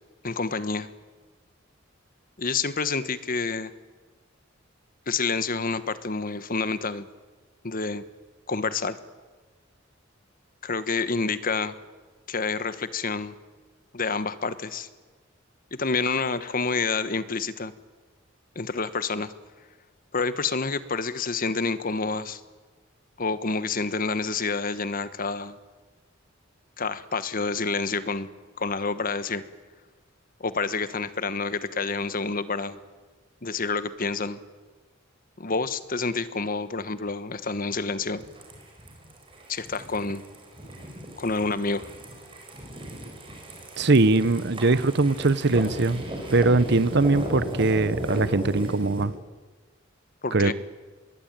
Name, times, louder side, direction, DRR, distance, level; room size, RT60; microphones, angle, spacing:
voice 1, 0.2-0.9 2.4-3.7 5.1-7.1 7.6-8.0 8.5-9.0 10.6-11.7 12.3-13.3 13.9-14.9 15.7-17.7 18.5-19.3 20.1-22.4 23.2-25.6 26.8-28.3 28.6-29.4 30.4-32.8 33.4-34.4 35.4-38.2 39.5-40.2 41.2-41.8 50.2-50.5, left 4 dB, 45° left, 1.3 m, -28 dB
sound 1, 38.2-49.0, equal, 25° right, 5.7 m, -36 dB
voice 2, 43.8-46.0 46.3-49.1 50.3-50.5, right 3 dB, 60° right, 0.9 m, -21 dB
25.5 x 21.5 x 9.0 m
head